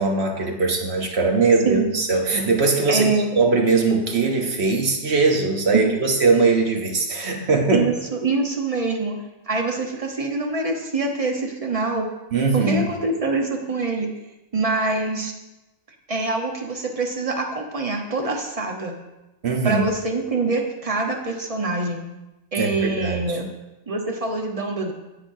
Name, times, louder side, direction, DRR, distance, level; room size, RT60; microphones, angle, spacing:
voice 1, 0.0-7.9 12.3-12.9 19.4-19.8 22.6-23.4, right 4 dB, 55° right, 3 dB, 1.2 m, -21 dB
voice 2, 2.9-3.4 5.7-5.9 7.7-9.2 9.5-12.0 12.5-14.1 14.5-15.3 16.1-19.0 19.6-22.0 22.5-23.5 23.9-24.9, right 3 dB, 30° right, 2 dB, 1.0 m, -24 dB
10.0 x 8.0 x 2.7 m, 0.99 s
omnidirectional pair, 1.3 m